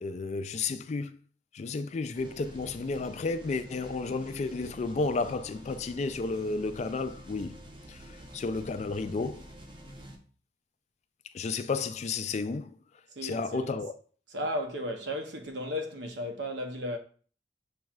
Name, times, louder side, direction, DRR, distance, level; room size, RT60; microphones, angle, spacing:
voice 1, 0.0-1.2 1.5-7.6 7.9-9.4 11.3-12.7 13.2-13.9, left 3 dB, 40° left, 0.3 m, -32 dB
sound 1, 2.1-10.2, equal, 25° right, 0.7 m, -48 dB
voice 2, 13.1-13.7 14.3-17.0, equal, 70° right, 0.8 m, -34 dB
7.2 x 3.1 x 2.4 m
head